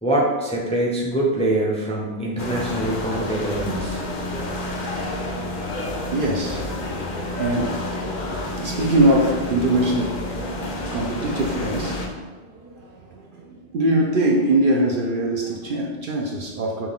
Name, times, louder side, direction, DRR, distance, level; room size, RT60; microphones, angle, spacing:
voice 1, 0.0-4.0, right 1 dB, 10° left, -4 dB, 0.5 m, -24 dB
sound 1, 2.4-12.1, left 1 dB, 50° left, 0.7 m, -29 dB
voice 2, 5.9-8.2 8.6-10.2 10.9-16.9, right 1 dB, 60° right, -1 dB, 0.6 m, -23 dB
5.9 x 2.3 x 3.5 m, 1.2 s
omnidirectional pair, 1.2 m